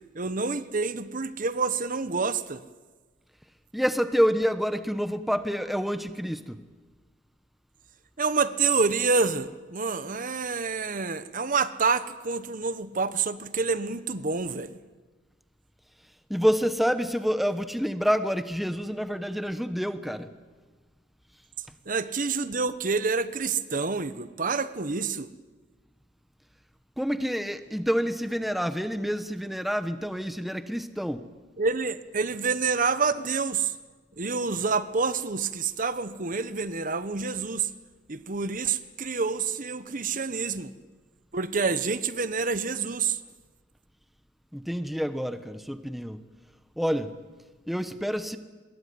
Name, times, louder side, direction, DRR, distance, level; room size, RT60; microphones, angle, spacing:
voice 1, 0.1-2.6 8.2-14.7 21.9-25.3 31.6-33.7 34.2-37.7 38.1-40.7 41.3-43.2, right 4 dB, 45° right, 13 dB, 1.1 m, -27 dB
voice 2, 3.7-6.6 16.3-20.3 27.0-31.3 44.5-46.2 46.8-47.1 47.7-48.4, equal, ahead, 10 dB, 1.1 m, -28 dB
25.5 x 21.5 x 9.5 m, 1.3 s
head